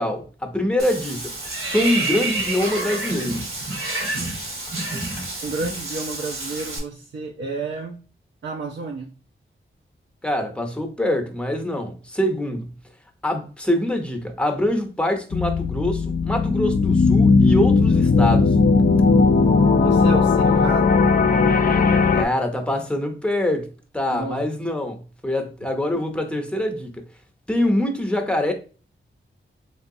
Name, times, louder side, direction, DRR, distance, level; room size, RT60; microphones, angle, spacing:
voice 1, 0.0-1.3 1.6-3.5 10.2-12.7 13.2-18.6 22.1-23.7 23.9-27.0 27.5-28.5, left 1 dB, 5° left, 0.7 m, -24 dB
Water / Bathtub (filling or washing), 0.8-6.8, right 2 dB, 80° right, 1.3 m, -28 dB
voice 2, 5.4-8.0 8.4-9.1 19.8-21.2 24.1-24.4, right 3 dB, 60° right, 0.5 m, -31 dB
sound 1, 15.3-22.2, left 4 dB, 45° left, 0.4 m, -17 dB
3.4 x 3.1 x 2.6 m
wide cardioid pair, 85°, 21 cm